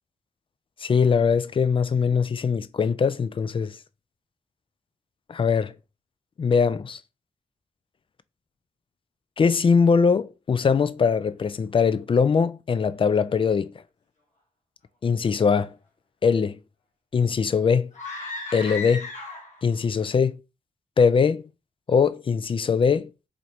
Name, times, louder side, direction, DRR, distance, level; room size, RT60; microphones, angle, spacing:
voice 1, 0.8-3.8 5.3-5.7 6.4-7.0 9.4-13.7 15.0-15.7 16.2-16.6 17.1-17.9 18.5-19.1 19.6-20.4 21.0-21.5 21.9-23.1, left 5 dB, 40° left, 0.4 m, -21 dB
sound 1, 17.9-19.7, left 3 dB, 65° left, 1.4 m, -35 dB
4.0 x 3.0 x 2.9 m
cardioid pair, 50°, 13 cm